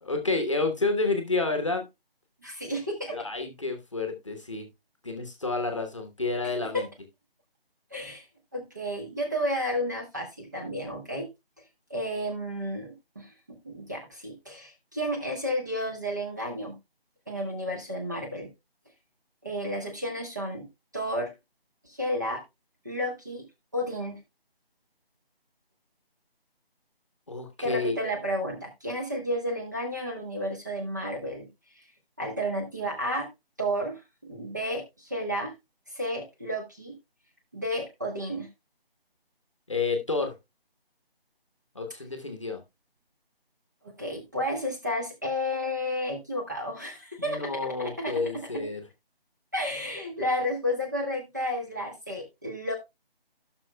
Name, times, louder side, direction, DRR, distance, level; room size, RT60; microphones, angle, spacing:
voice 1, 0.0-1.9 3.1-4.7 5.0-6.9 27.3-28.0 39.7-40.3 41.7-42.6 47.2-48.8, left 3 dB, 30° left, 5 dB, 1.1 m, -29 dB
voice 2, 2.4-3.2 6.7-6.8 7.9-8.2 8.5-11.3 11.9-13.3 13.6-16.8 17.3-18.5 19.4-20.7 20.9-21.3 21.8-22.4 22.8-23.4 23.7-24.2 27.6-31.5 32.2-33.3 33.6-35.5 35.9-36.9 37.5-38.5 43.8-47.5 47.8-48.1 49.5-52.7, equal, 20° right, 1 dB, 1.1 m, -32 dB
16.5 x 6.2 x 2.2 m, 0.22 s
figure-of-eight pair, 175°, 30 cm